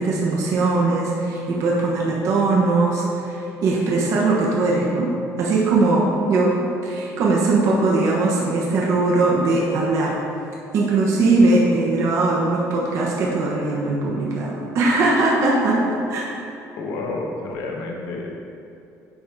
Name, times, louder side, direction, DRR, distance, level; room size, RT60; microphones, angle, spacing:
voice 1, 0.0-5.1 5.4-6.6 6.8-10.1 10.7-16.2, right 3 dB, 55° right, -4 dB, 1.1 m, -20 dB
voice 2, 16.8-18.3, left 3 dB, 85° left, 0 dB, 1.2 m, -29 dB
10.0 x 3.7 x 4.6 m, 2.7 s
cardioid pair, 150°, 6 cm